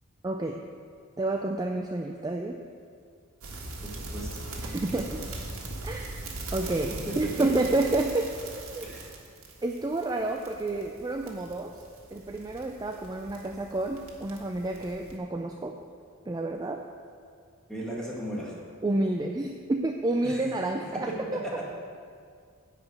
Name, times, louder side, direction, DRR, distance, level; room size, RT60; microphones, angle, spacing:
voice 1, 0.2-0.6 1.2-2.6 4.6-5.2 5.8-6.1 6.5-8.3 8.6-8.9 9.6-11.7 12.1-15.8 16.3-16.8 18.8-21.4, right 2 dB, 20° right, 3 dB, 0.4 m, -29 dB
sound 1, 3.4-15.2, right 2 dB, 85° right, 1.6 m, -41 dB
voice 2, 3.8-4.5 5.1-5.2 7.1-7.5 8.8-9.1 17.7-18.6 20.2-20.4 21.1-21.2 21.4-21.5, right 1 dB, 5° left, -5 dB, 1.9 m, -36 dB
10.5 x 5.0 x 7.9 m, 2.1 s
head